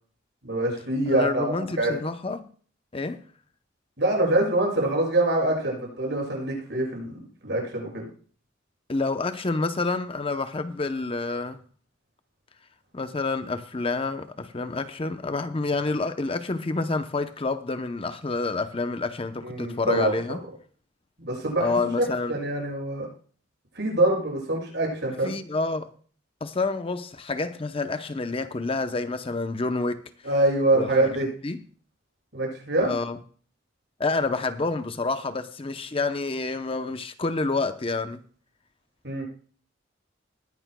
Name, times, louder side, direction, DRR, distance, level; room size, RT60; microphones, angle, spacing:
voice 1, 0.4-1.5 1.8-1.9 4.0-8.1 19.4-20.1 21.2-23.1 23.7-25.3 30.2-31.2 32.3-32.9 39.0-39.2, right 1 dB, 60° right, 6.7 m, -25 dB
voice 2, 1.1-2.5 2.9-3.2 8.9-11.6 12.9-20.4 21.6-22.3 25.2-25.9 26.4-30.0 30.7-31.2 31.4-31.6 32.8-33.2 34.0-38.2, left 3 dB, 30° left, 0.7 m, -28 dB
20.5 x 10.5 x 2.2 m
head